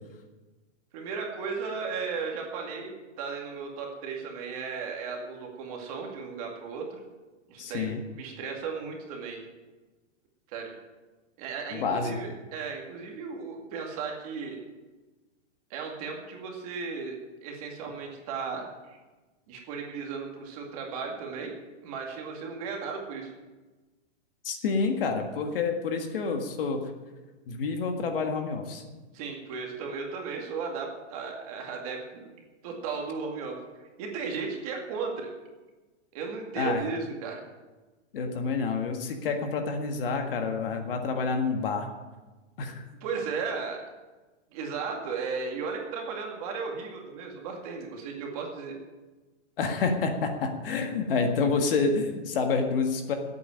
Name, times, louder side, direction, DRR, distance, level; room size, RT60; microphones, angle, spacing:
voice 1, 0.9-7.0 7.5-7.9 8.2-9.4 10.5-10.7 11.4-14.6 15.7-19.0 19.5-21.5 21.8-23.3 29.1-32.3 32.6-33.6 34.0-35.3 36.1-37.4 43.0-43.8 44.5-48.8, right 5 dB, 30° right, 1 dB, 2.2 m, -35 dB
voice 2, 7.6-8.0 11.7-12.1 24.4-26.8 27.5-28.8 36.6-36.8 38.1-41.9 42.6-42.8 49.6-53.1, left 4 dB, 50° left, 4 dB, 1.8 m, -28 dB
12.5 x 8.6 x 8.9 m, 1.2 s
supercardioid pair, 180°, 36 cm